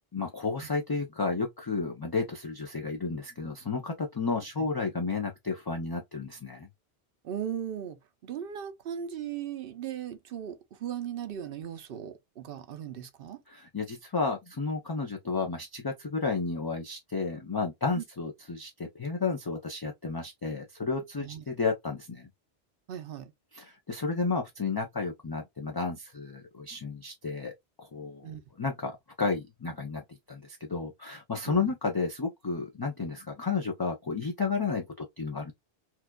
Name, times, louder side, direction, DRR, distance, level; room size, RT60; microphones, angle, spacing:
voice 1, 0.0-6.7 13.5-22.3 23.5-27.5 27.8-35.5, left 4 dB, 30° left, 0.4 m, -32 dB
voice 2, 7.2-13.4 18.0-18.1 21.2-21.4 22.9-23.3 28.2-28.4 31.5-31.7, right 9 dB, 65° right, 0.7 m, -37 dB
4.5 x 2.3 x 2.2 m
omnidirectional pair, 1.1 m